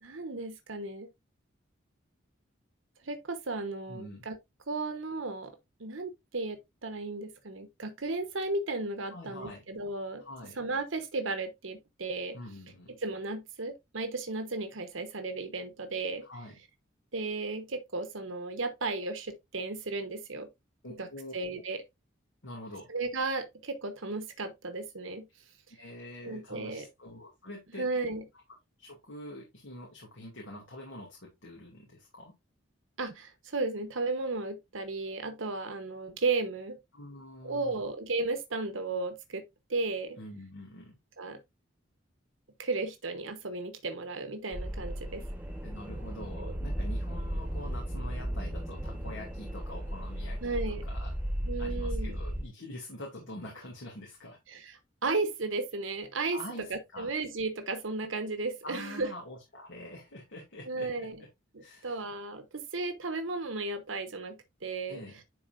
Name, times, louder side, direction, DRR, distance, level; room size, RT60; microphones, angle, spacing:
voice 1, 0.0-1.1 3.0-4.4 4.7-5.5 5.8-10.2 10.6-12.4 12.9-16.2 17.1-20.5 21.0-21.1 21.3-21.8 22.9-25.3 26.2-26.9 27.8-28.2 33.0-36.8 37.4-39.4 39.7-40.2 41.2-41.4 42.6-45.2 46.4-46.5 50.4-50.8 51.5-52.2 54.5-56.4 56.7-59.1 60.7-61.2 61.5-65.0, right 3 dB, 80° right, 1.1 m, -34 dB
voice 2, 3.9-4.3 9.1-9.6 10.2-10.6 12.3-12.9 16.2-16.6 20.8-21.6 22.4-22.9 25.7-27.9 28.8-32.3 36.9-37.8 40.2-41.0 45.6-51.1 51.6-54.4 56.3-57.1 58.6-61.1 61.6-62.0 64.9-65.2, left 1 dB, 75° left, 2.4 m, -45 dB
sound 1, 44.5-52.5, equal, 10° right, 1.2 m, -35 dB
10.5 x 4.2 x 2.6 m
head